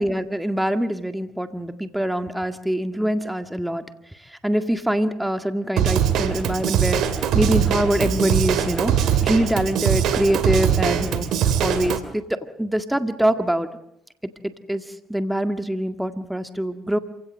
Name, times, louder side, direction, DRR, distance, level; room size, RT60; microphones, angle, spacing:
voice 1, 0.0-3.8 4.1-7.0 7.3-11.3 11.6-13.7 14.4-17.0, equal, 5° right, 8 dB, 1.9 m, -24 dB
Drum kit / Drum, 5.8-12.0, right 9 dB, 70° right, 2.6 m, -22 dB
27.0 x 17.0 x 7.5 m, 0.77 s
supercardioid pair, 70°, 0 cm